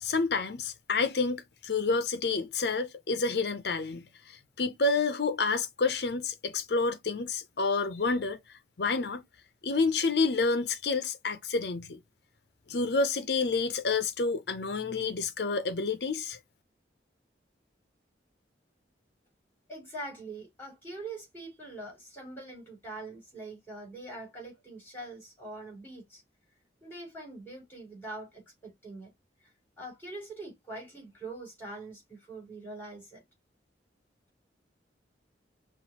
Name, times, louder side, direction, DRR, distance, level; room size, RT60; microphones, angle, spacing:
voice 1, 0.0-8.4 8.8-9.2 9.6-12.0 12.7-16.4, left 4 dB, 65° left, 0.6 m, -29 dB
voice 2, 19.7-26.2 26.8-29.1 29.4-33.2, right 2 dB, 10° left, 3.7 m, -43 dB
5.8 x 2.4 x 2.9 m
head